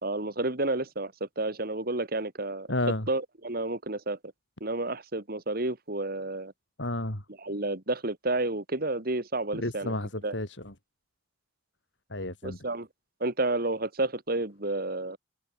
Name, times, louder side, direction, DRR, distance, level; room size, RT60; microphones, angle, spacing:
voice 1, 0.0-2.7 3.1-4.2 4.6-6.5 7.4-9.9 10.2-10.3 12.4-12.9 13.2-15.2, right 2 dB, 55° right, 2.8 m, -30 dB
voice 2, 2.7-3.1 6.8-7.2 9.5-10.7 12.1-12.6, left 1 dB, 90° left, 5.8 m, -31 dB
open air
head